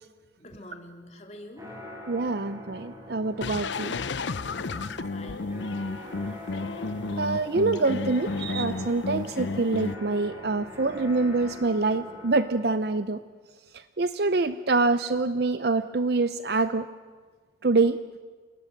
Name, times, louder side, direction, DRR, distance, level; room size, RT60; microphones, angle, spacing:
voice 1, 0.4-1.7 4.5-5.5 8.3-8.4, left 1 dB, 35° left, 3 dB, 2.5 m, -47 dB
sound 1, 1.6-12.4, left 1 dB, 20° right, 7.8 m, -43 dB
voice 2, 2.1-4.0 7.2-13.2 14.0-16.9 17.6-18.0, right 3 dB, 55° right, 12 dB, 0.6 m, -25 dB
sound 2, 3.4-9.9, left 3 dB, 75° left, 0.6 m, -32 dB
29.0 x 19.0 x 6.6 m, 1.5 s
head